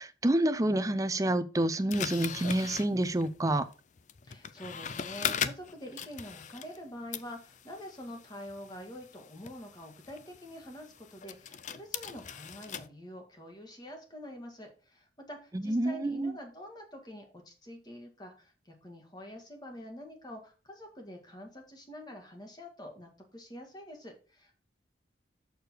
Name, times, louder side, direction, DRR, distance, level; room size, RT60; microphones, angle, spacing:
voice 1, 0.0-3.6 15.5-16.3, right 1 dB, 20° right, 11 dB, 0.6 m, -28 dB
sound 1, 1.9-6.8 7.1-12.9, left 8 dB, 40° left, 0.4 m, -40 dB
voice 2, 4.2-24.6, equal, 20° left, 3 dB, 1.8 m, -46 dB
6.7 x 6.7 x 4.5 m, 0.34 s
head